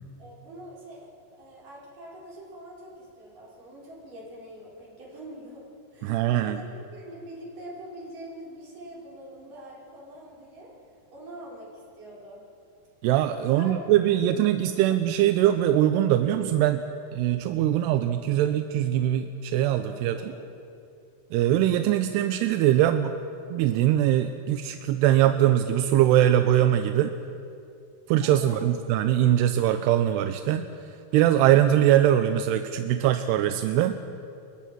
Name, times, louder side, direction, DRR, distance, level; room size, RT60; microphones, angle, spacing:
voice 1, 0.2-1.1 1.4-10.7 11.1-11.7 12.0-12.4 13.4-13.9 14.5-14.6 20.1-20.5 28.2-28.6, right 1 dB, 45° right, -6 dB, 7.1 m, -44 dB
voice 2, 6.0-6.6 13.0-16.8 17.1-20.3 21.3-23.1 23.5-27.1 28.1-30.6 31.1-34.0, right 12 dB, 80° right, 8 dB, 2.6 m, -22 dB
28.0 x 22.5 x 6.1 m, 2.6 s
omnidirectional pair, 5.1 m